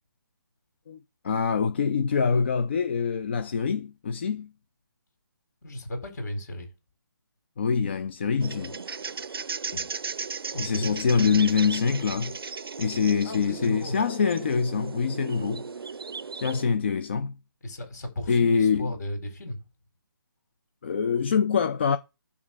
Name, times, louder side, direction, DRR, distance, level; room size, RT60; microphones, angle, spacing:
voice 1, 1.2-4.5 7.6-8.8 9.7-9.8 10.6-12.4 12.8-15.6 16.3-17.3 18.3-18.9 20.8-22.0, left 6 dB, 30° left, 0.5 m, -25 dB
voice 2, 5.6-6.7 10.5-11.5 13.2-14.0 17.6-19.6, left 1 dB, 50° left, 4.4 m, -35 dB
sound 1, 8.4-16.6, right 5 dB, 90° right, 0.5 m, -36 dB
9.7 x 3.6 x 6.7 m
hypercardioid pair, 165°, 12 cm